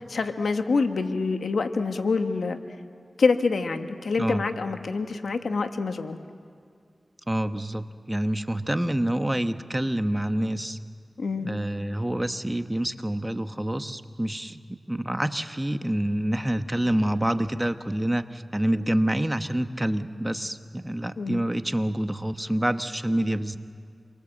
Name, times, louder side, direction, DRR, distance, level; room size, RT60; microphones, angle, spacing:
voice 1, 0.1-2.6 3.2-6.2 11.2-11.5 21.2-21.4, left 4 dB, 85° left, 7 dB, 1.3 m, -26 dB
voice 2, 7.3-10.8 11.4-23.6, right 1 dB, 15° right, 9 dB, 1.1 m, -27 dB
28.5 x 23.5 x 7.7 m, 2.2 s
cardioid pair, 55°, 0 cm